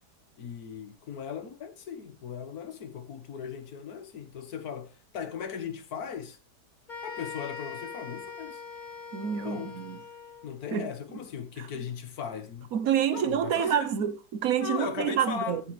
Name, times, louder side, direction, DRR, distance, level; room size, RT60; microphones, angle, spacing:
voice 1, 0.4-6.4 7.0-8.6 9.4-9.7 10.4-12.7 13.1-13.9 14.6-15.6, left 7 dB, 65° left, 1.8 m, -38 dB
sound 1, 6.9-10.5, left 5 dB, 25° left, 2.2 m, -42 dB
voice 2, 9.1-10.0 10.7-10.9 11.6-11.7 12.7-15.6, right 9 dB, 60° right, 1.3 m, -28 dB
14.5 x 7.9 x 3.3 m
omnidirectional pair, 1.8 m